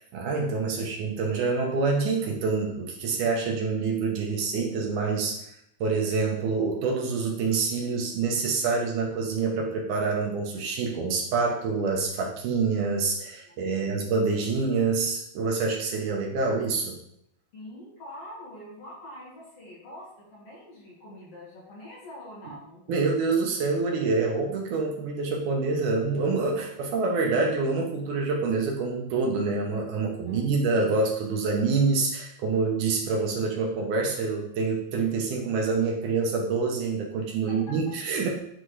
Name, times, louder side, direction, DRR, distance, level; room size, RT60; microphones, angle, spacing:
voice 1, 0.1-5.4 5.8-16.9 22.9-38.3, right 4 dB, 75° right, -1 dB, 2.3 m, -26 dB
voice 2, 13.4-13.8 17.5-23.0 30.3-30.5, left 1 dB, 50° left, -5 dB, 2.6 m, -45 dB
9.0 x 4.0 x 3.2 m, 0.73 s
omnidirectional pair, 3.8 m